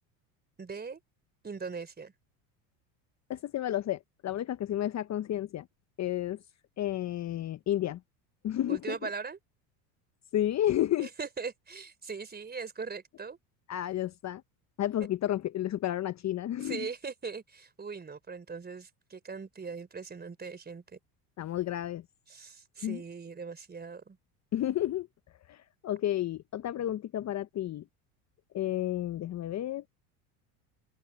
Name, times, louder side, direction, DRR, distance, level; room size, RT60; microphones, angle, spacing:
voice 1, 0.6-1.0 1.4-2.1 8.7-9.4 11.0-13.4 16.6-21.0 22.3-24.2, right 5 dB, 20° right, 4.1 m, -40 dB
voice 2, 3.3-5.7 6.0-6.4 6.8-8.0 8.4-9.0 10.3-11.1 13.7-14.4 14.8-16.9 21.4-22.0 22.8-23.0 24.5-25.1 25.5-27.8 28.5-29.8, left 12 dB, 35° left, 1.0 m, -31 dB
open air
supercardioid pair, 90°, 45 cm